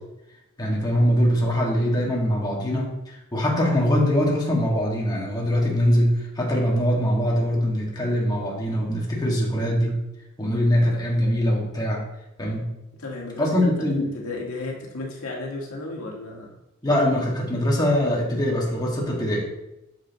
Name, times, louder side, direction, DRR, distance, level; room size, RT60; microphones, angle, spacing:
voice 1, 0.6-10.0 10.4-12.0 12.4-12.7 13.4-14.1 16.8-19.6, equal, 20° left, -3 dB, 1.8 m, -22 dB
voice 2, 13.0-13.5 14.1-16.5, left 2 dB, 85° left, -1 dB, 1.7 m, -33 dB
8.7 x 6.8 x 3.0 m, 0.91 s
head